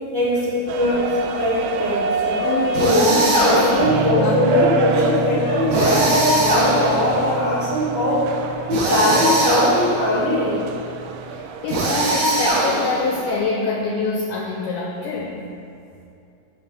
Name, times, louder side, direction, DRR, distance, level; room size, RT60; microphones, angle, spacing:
voice 1, 0.1-8.2 8.7-10.5, left 1 dB, 40° right, -12 dB, 1.8 m, -20 dB
sound 1, 0.7-13.4, right 4 dB, 90° right, 1.9 m, -30 dB
sound 2, 2.7-3.9 5.7-7.1 8.7-10.0 11.7-13.1, right 1 dB, 65° right, 2.8 m, -20 dB
voice 2, 3.4-3.9 4.2-5.1 11.3-15.4, left 4 dB, 85° left, -2 dB, 1.9 m, -26 dB
sound 3, 3.8-11.4, right 4 dB, 55° left, 1.2 m, -31 dB
9.0 x 3.4 x 6.6 m, 2.5 s
omnidirectional pair, 4.5 m